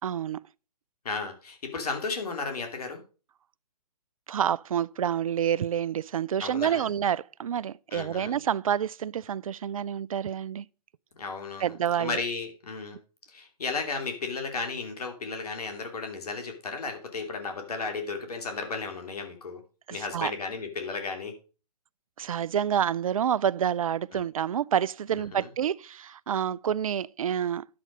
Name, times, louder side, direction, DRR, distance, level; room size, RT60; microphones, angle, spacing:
voice 1, 0.0-0.4 4.3-10.7 11.6-12.2 19.9-20.3 22.2-27.7, right 9 dB, 55° right, 0.4 m, -28 dB
voice 2, 1.0-3.0 6.4-6.9 7.9-8.4 11.2-11.7 12.0-13.0 13.3-19.6 19.9-21.3 24.1-24.2 25.3-25.5, left 4 dB, 65° left, 2.8 m, -34 dB
10.5 x 7.6 x 5.0 m
figure-of-eight pair, 135°, 21 cm